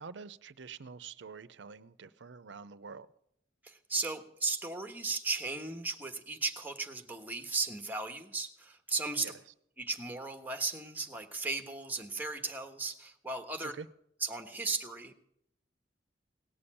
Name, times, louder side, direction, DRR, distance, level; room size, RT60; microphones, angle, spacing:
voice 1, 0.0-3.1 9.2-9.3 13.6-13.9, right 5 dB, 80° right, 16 dB, 0.6 m, -46 dB
voice 2, 3.6-9.3 9.8-13.7 14.2-15.2, right 3 dB, 10° right, 6 dB, 1.3 m, -36 dB
18.5 x 7.0 x 10.0 m, 0.74 s
head